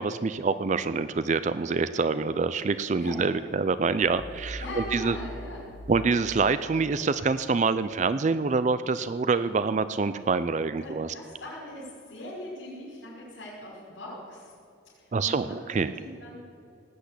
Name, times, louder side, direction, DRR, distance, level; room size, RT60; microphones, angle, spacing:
voice 1, 0.0-5.2 5.9-11.1 15.1-15.9, right 4 dB, 35° right, 13 dB, 0.4 m, -26 dB
sound 1, 4.0-6.7, equal, 45° left, 1.6 m, -41 dB
voice 2, 4.6-5.7 10.8-14.5 14.9-16.4, left 1 dB, 75° left, -6 dB, 5.0 m, -41 dB
18.5 x 8.1 x 8.3 m, 2.5 s
head